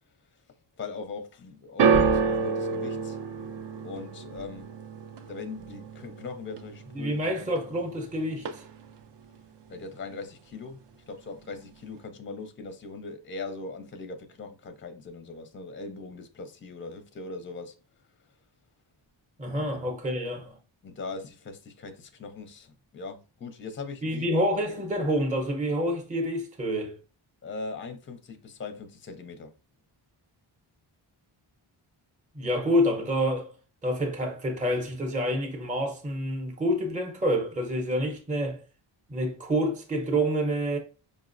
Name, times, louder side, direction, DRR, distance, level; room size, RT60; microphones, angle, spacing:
voice 1, 0.8-3.2 3.8-4.7 5.3-7.2 9.7-17.7 19.6-19.7 20.8-24.3 27.4-29.5, left 4 dB, 25° left, 0.5 m, -40 dB
sound 1, 1.8-8.1 8.3-9.0 9.7-9.8, right 5 dB, 60° right, 0.5 m, -28 dB
voice 2, 6.9-8.6 19.4-20.6 24.0-27.0 32.3-33.5 33.8-38.6 39.1-40.8, equal, 15° right, 0.6 m, -28 dB
5.1 x 2.0 x 2.5 m
wide cardioid pair, 90°, 50 cm